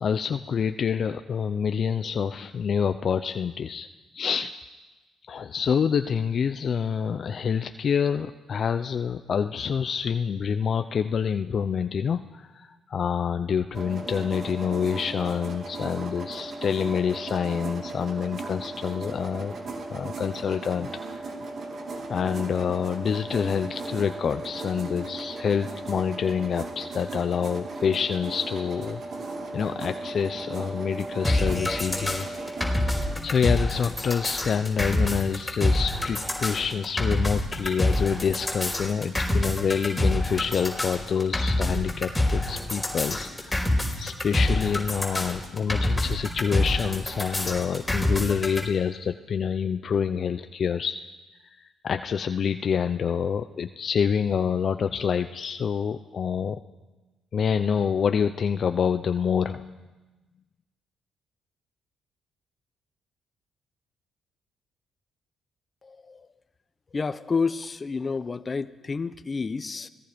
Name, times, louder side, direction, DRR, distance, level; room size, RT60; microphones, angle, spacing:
voice 1, 0.0-3.9 4.1-4.5 5.3-19.6 19.9-21.2 22.1-29.0 29.5-32.3 33.2-51.0 51.6-56.6 57.3-59.7, left 7 dB, 50° left, 9 dB, 0.6 m, -27 dB
sound 1, 13.7-33.2, right 2 dB, 55° right, 3.0 m, -36 dB
sound 2, 31.2-48.6, left 1 dB, 10° left, 4.9 m, -26 dB
voice 2, 66.9-69.9, left 4 dB, 30° left, 12 dB, 1.0 m, -29 dB
29.0 x 19.0 x 5.2 m, 1.2 s
cardioid pair, 90°, 0 cm